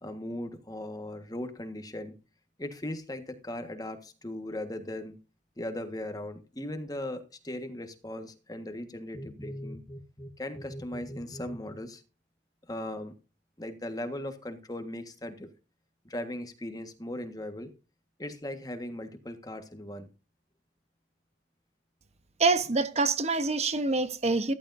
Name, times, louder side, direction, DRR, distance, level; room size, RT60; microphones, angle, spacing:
voice 1, 0.0-2.1 2.6-5.2 5.6-12.0 12.7-13.1 13.6-15.5 16.0-17.7 18.2-20.1, left 1 dB, 20° left, 1.5 m, -38 dB
voice 2, 22.4-24.5, right 3 dB, 35° right, 1.0 m, -26 dB
14.5 x 13.5 x 2.6 m
head